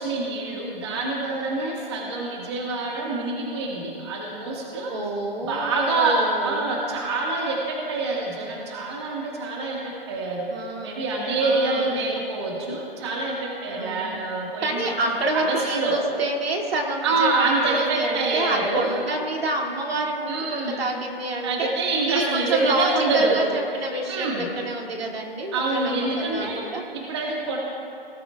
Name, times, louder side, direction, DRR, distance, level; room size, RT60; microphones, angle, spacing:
voice 1, 0.0-4.9 5.4-10.5 10.8-15.9 17.0-19.0 20.3-20.8 21.4-23.4 24.1-24.5 25.5-26.6 26.9-27.6, right 3 dB, 25° right, -2 dB, 1.7 m, -26 dB
voice 2, 4.9-6.7 10.5-11.0 11.4-12.1 13.8-14.1 14.6-21.7 22.1-26.8, right 2 dB, 80° right, 0 dB, 2.5 m, -28 dB
18.5 x 13.0 x 2.4 m, 2.7 s
hypercardioid pair, 170°, 30 cm